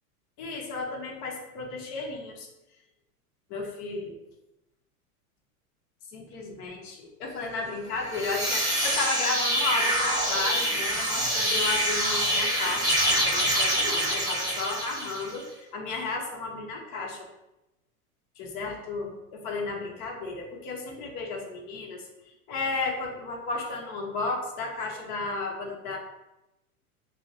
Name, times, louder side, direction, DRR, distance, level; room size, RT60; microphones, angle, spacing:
voice 1, 0.4-2.5 3.5-4.1 6.1-15.4 15.7-17.3 18.4-22.0 22.5-26.0, left 3 dB, 40° left, -1 dB, 0.9 m, -33 dB
sound 1, 8.0-15.4, equal, 10° right, 0.7 m, -26 dB
5.7 x 2.1 x 2.6 m, 0.92 s
hypercardioid pair, 110°, 45 cm